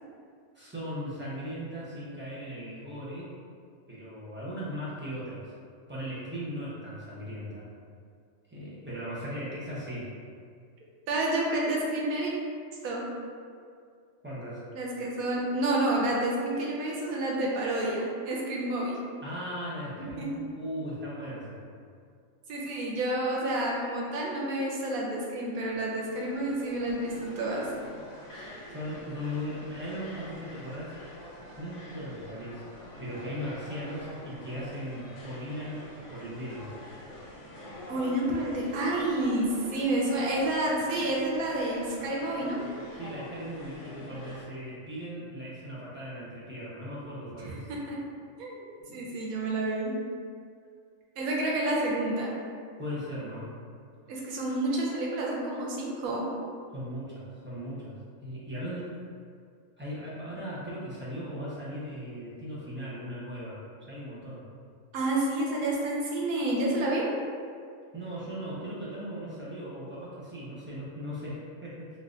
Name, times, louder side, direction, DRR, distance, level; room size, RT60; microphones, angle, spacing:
voice 1, 0.5-3.3 3.9-5.5 5.9-7.7 8.5-10.1 14.2-14.6 19.2-21.6 28.3-30.9 31.6-32.6 33.0-36.7 42.9-47.7 48.8-49.1 52.8-53.5 56.7-57.9 58.2-58.9 59.8-64.4 67.9-71.9, equal, 20° right, -9 dB, 0.3 m, -38 dB
voice 2, 11.1-12.3 12.8-13.0 14.7-19.0 20.2-20.4 22.5-27.7 37.9-42.6 47.4-48.0 48.4-49.9 51.2-52.3 54.1-56.3 64.9-67.0, right 1 dB, 85° right, -3 dB, 1.1 m, -29 dB
sound 1, 25.7-44.5, left 1 dB, 80° left, 1.2 m, -46 dB
3.9 x 2.4 x 2.5 m, 2.2 s
omnidirectional pair, 1.4 m